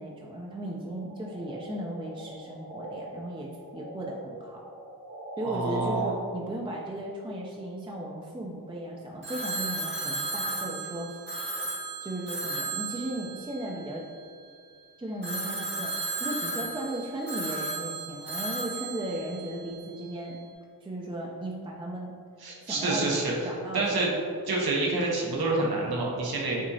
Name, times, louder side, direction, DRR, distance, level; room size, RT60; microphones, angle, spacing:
voice 1, 0.0-4.6 5.4-11.2 12.0-14.0 15.0-20.4 20.8-22.1 22.6-23.2 23.4-23.9, right 1 dB, 15° right, -2 dB, 0.4 m, -36 dB
sound 1, 1.0-3.0 3.4-5.5, right 1 dB, 55° right, 1.3 m, -44 dB
voice 2, 5.4-6.2 22.4-23.3 23.7-24.1 24.4-26.7, right 2 dB, 70° right, -3 dB, 0.9 m, -27 dB
Telephone, 9.2-14.5 15.2-20.1, right 3 dB, 30° right, 0.9 m, -35 dB
6.0 x 2.8 x 2.7 m, 2.3 s
wide cardioid pair, 110°, 38 cm